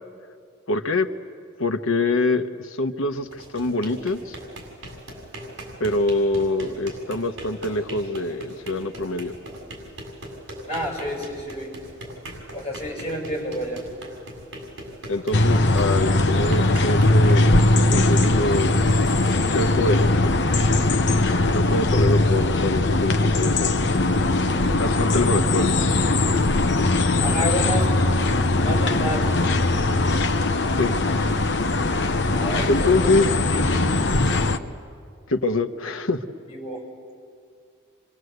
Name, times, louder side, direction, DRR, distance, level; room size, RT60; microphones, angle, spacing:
voice 1, 0.7-1.1 1.6-4.4 5.8-9.3 15.1-17.6 17.9-18.8 19.5-20.3 21.5-24.2 24.8-25.7 30.8-30.9 32.7-33.3 35.3-36.2, left 2 dB, 85° left, 7 dB, 1.2 m, -25 dB
sound 1, 3.2-20.2, right 1 dB, 70° right, 7.1 m, -40 dB
voice 2, 10.7-11.7 12.5-13.8 27.2-27.9 28.6-29.3 32.3-33.0 33.3-34.0 36.5-36.8, equal, 30° left, -1 dB, 7.2 m, -29 dB
sound 2, 15.3-34.6, left 2 dB, 60° left, 0.9 m, -20 dB
29.0 x 25.5 x 8.1 m, 2.3 s
head